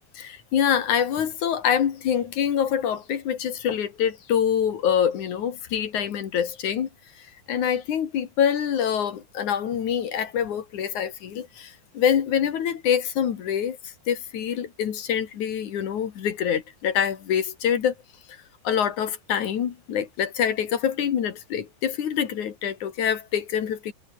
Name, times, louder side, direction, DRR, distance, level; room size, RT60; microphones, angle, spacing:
voice 1, 0.2-6.9 7.5-17.9 18.6-23.9, left 8 dB, 55° left, 2.8 m, -25 dB
omnidirectional pair, 4.8 m